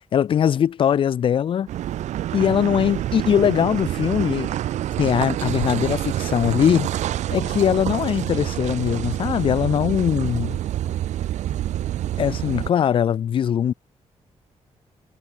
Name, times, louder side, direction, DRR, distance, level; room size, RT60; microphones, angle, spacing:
voice 1, 0.1-1.7 2.3-4.5 5.0-6.9 7.3-10.6 12.2-13.7, left 9 dB, 50° left, 0.4 m, -21 dB
Car passing by / Idling / Accelerating revving vroom, 1.7-12.7, right 12 dB, 90° right, 0.4 m, -27 dB
sound 1, 9.4-12.5, left 9 dB, 70° left, 6.6 m, -53 dB
wide cardioid pair, 170°, 12 cm